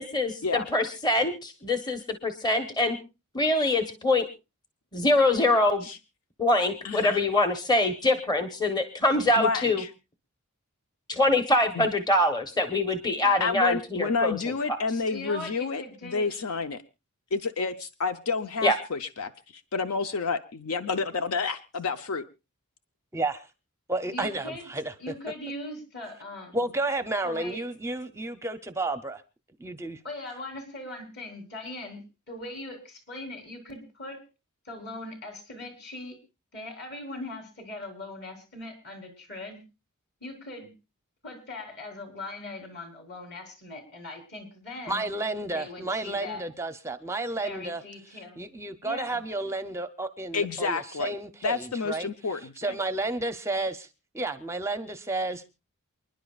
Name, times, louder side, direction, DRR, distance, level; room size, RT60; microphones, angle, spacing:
voice 1, 0.0-3.0 3.3-4.2 4.9-5.9 6.4-9.8 11.1-14.4 18.6-18.8, left 2 dB, 20° left, 7 dB, 1.0 m, -24 dB
voice 2, 6.8-7.2 9.4-9.9 11.8-11.9 13.4-16.8 17.3-19.3 19.7-22.2 50.3-51.1 51.4-52.8, left 4 dB, 80° left, 10 dB, 0.7 m, -29 dB
voice 3, 15.1-16.3 24.1-24.7 25.0-26.6 27.2-27.6 30.0-32.0 32.3-34.2 34.7-36.2 36.5-39.6 40.2-40.7 41.2-45.0 45.5-46.5 47.3-48.4 48.8-49.2, left 2 dB, 50° left, 3 dB, 3.8 m, -40 dB
voice 4, 23.1-23.5 23.9-24.9 26.5-29.2 29.6-30.0 44.9-47.8 48.4-52.1 52.6-53.9 54.1-55.4, right 2 dB, 15° right, 10 dB, 0.6 m, -31 dB
28.5 x 10.5 x 2.4 m, 0.28 s
head